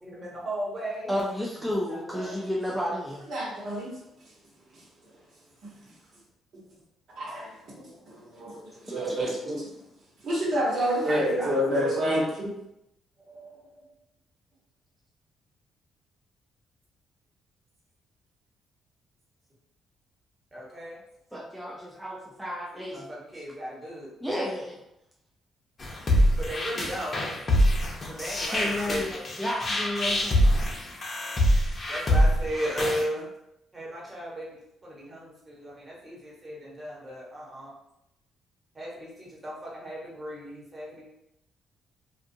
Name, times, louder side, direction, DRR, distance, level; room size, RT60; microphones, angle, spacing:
voice 1, 0.0-1.1 1.9-2.4 11.0-12.2 13.2-13.9 20.5-21.0 22.7-24.1 26.4-27.2 28.1-29.0 31.9-33.3 33.7-37.7 38.7-41.0, equal, 20° right, -5 dB, 1.2 m, -36 dB
voice 2, 1.1-3.3 8.9-9.4 21.3-23.1 24.2-24.8 28.5-30.7, equal, 5° right, -3 dB, 0.4 m, -32 dB
voice 3, 3.3-3.9 7.2-7.5 8.1-9.6 10.2-12.5, equal, 70° right, -5 dB, 1.2 m, -28 dB
sound 1, 25.8-33.0, equal, 35° left, 0.7 m, -24 dB
2.5 x 2.4 x 2.7 m, 0.81 s
cardioid pair, 90°, 0 cm